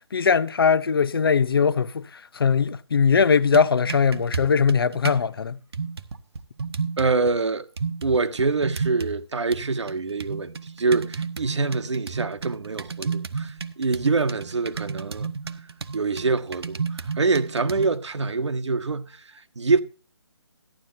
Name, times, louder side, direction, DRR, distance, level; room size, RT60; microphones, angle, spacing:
voice 1, 0.1-2.0 2.3-5.6, left 6 dB, 55° left, 0.7 m, -20 dB
sound 1, 3.3-5.3 5.7-7.3 7.8-9.2 9.5-18.0, right 5 dB, 60° right, 1.1 m, -32 dB
voice 2, 7.0-7.7 8.0-15.3 15.9-19.8, right 4 dB, 80° right, 1.4 m, -25 dB
14.5 x 11.0 x 2.7 m
hypercardioid pair, 170°, 15 cm